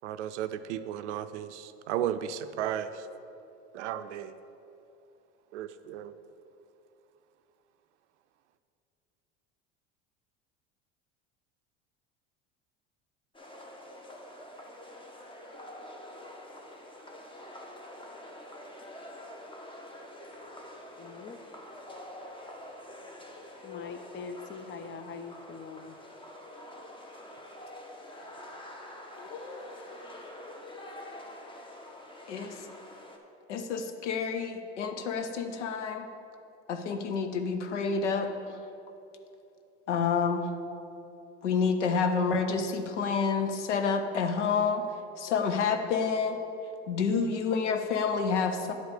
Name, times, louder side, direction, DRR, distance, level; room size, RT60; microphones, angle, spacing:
voice 1, 0.0-2.9 3.7-4.3 5.5-6.1, right 10 dB, 85° right, 11 dB, 0.5 m, -34 dB
sound 1, 13.3-33.2, left 1 dB, 15° left, 1.1 m, -46 dB
voice 2, 21.0-21.4 23.6-26.0, left 5 dB, 35° left, 9 dB, 0.7 m, -42 dB
voice 3, 29.2-29.8 32.3-32.5 33.5-36.1 36.7-38.6 39.9-40.5 41.4-44.8 45.2-46.4 46.9-48.7, left 5 dB, 85° left, 7 dB, 0.7 m, -29 dB
9.5 x 4.7 x 6.6 m, 2.8 s
hypercardioid pair, 80°, 34 cm